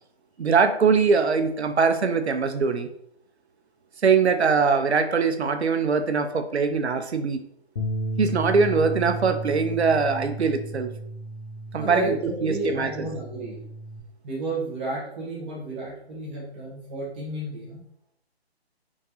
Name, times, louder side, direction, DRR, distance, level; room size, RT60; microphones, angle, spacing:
voice 1, 0.4-2.9 4.0-7.4 8.2-10.9 11.7-12.1 12.4-13.1, right 5 dB, 85° right, 8 dB, 0.6 m, -22 dB
Bass guitar, 7.8-14.0, right 1 dB, 50° left, 0.9 m, -34 dB
voice 2, 11.8-13.6 14.2-17.8, right 1 dB, 10° right, -6 dB, 0.6 m, -32 dB
3.5 x 3.2 x 2.6 m, 0.68 s
figure-of-eight pair, 145°, 32 cm